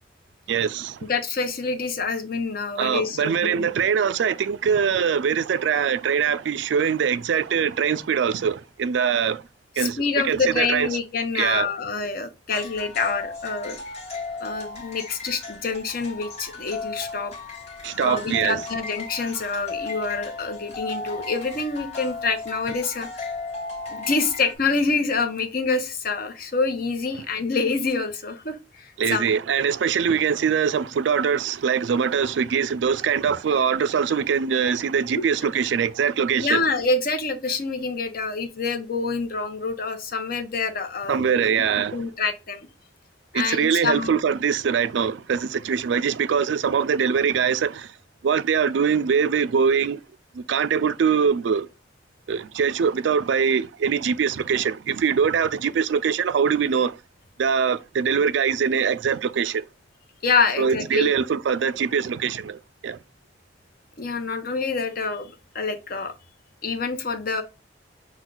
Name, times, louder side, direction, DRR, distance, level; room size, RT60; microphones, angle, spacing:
voice 1, 0.5-1.0 2.8-9.4 9.8-10.9 11.3-11.7 17.8-18.6 29.0-36.6 41.1-42.0 43.3-47.9 48.2-50.0 50.3-51.7 52.3-57.0 57.4-59.7 60.6-63.0, right 7 dB, 75° right, 0.4 m, -23 dB
voice 2, 1.1-3.7 9.8-13.8 14.4-17.3 18.0-23.2 23.9-29.3 35.2-35.3 36.4-41.5 41.9-42.7 43.3-44.1 60.2-61.1 64.0-66.1 66.6-67.4, left 4 dB, 50° left, 0.8 m, -26 dB
sound 1, 12.5-24.5, left 3 dB, 35° left, 1.1 m, -35 dB
6.0 x 2.2 x 3.8 m
head